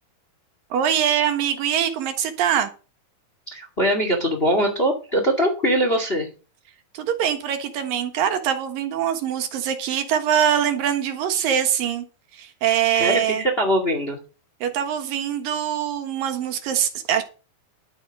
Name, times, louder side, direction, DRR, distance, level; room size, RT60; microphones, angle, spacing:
voice 1, 0.7-2.7 6.9-12.0 12.3-13.4 14.6-17.2, right 9 dB, 70° right, 8 dB, 3.0 m, -23 dB
voice 2, 3.5-6.3 12.9-14.2, equal, 20° left, 5 dB, 1.7 m, -22 dB
11.5 x 8.1 x 6.4 m, 0.34 s
omnidirectional pair, 4.4 m